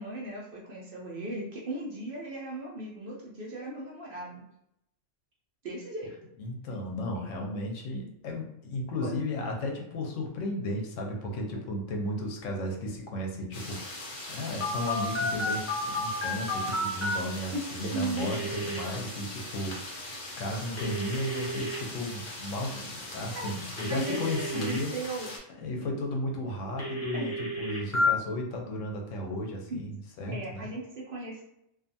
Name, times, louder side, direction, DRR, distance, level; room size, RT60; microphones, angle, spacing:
voice 1, 0.0-4.4 5.6-6.1 9.0-9.1 17.5-18.3 23.3-23.5 23.9-25.3 25.8-25.9 27.1-27.3 29.7-29.8 30.3-31.4, right 2 dB, 55° right, -3 dB, 0.7 m, -37 dB
voice 2, 6.4-20.0 20.4-24.9 25.6-30.7, left 1 dB, 85° left, 1 dB, 1.0 m, -34 dB
sound 1, 13.5-25.4, left 2 dB, 50° left, 0.8 m, -41 dB
Telephone, 14.6-17.1 18.2-18.8 20.8-21.8 23.8-24.8 26.8-28.1, left 1 dB, 25° left, 0.3 m, -32 dB
2.5 x 2.3 x 2.6 m, 0.81 s
omnidirectional pair, 1.3 m